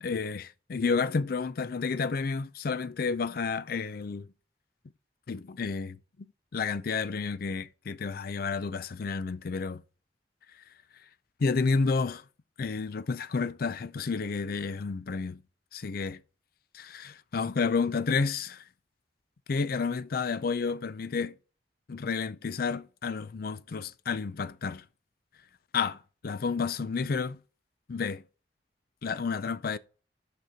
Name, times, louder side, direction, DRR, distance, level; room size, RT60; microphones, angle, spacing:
voice 1, 0.0-4.2 5.3-6.0 6.5-9.8 11.4-12.2 12.6-15.4 15.7-16.2 16.7-18.6 19.5-21.3 21.9-24.8 25.7-26.0 26.2-27.4 27.9-28.2 29.0-29.8, left 4 dB, 55° left, 0.5 m, -30 dB
6.4 x 6.0 x 4.9 m
head